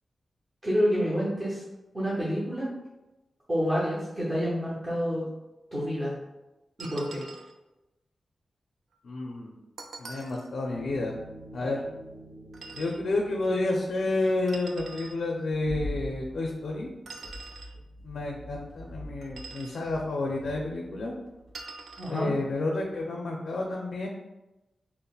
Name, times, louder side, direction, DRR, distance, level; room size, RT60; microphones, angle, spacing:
voice 1, 0.6-1.6 1.9-2.7 3.5-5.3 5.7-6.2 6.8-7.2 22.0-22.3, equal, 20° right, -8 dB, 0.7 m, -28 dB
sound 1, 6.8-7.6 9.8-10.5 12.5-13.0 14.5-15.2 17.1-17.8 19.2-19.8 21.5-22.2, right 3 dB, 75° right, 0.3 m, -44 dB
voice 2, 9.0-9.6 10.0-11.1 11.5-11.8 12.8-16.9 18.0-21.1 22.1-24.1, left 2 dB, 85° left, -1 dB, 0.4 m, -30 dB
sound 2, 10.7-22.3 22.5-22.8, equal, 60° right, 0.7 m, -44 dB
5.2 x 2.0 x 2.3 m, 1.0 s
wide cardioid pair, 175°, 0 cm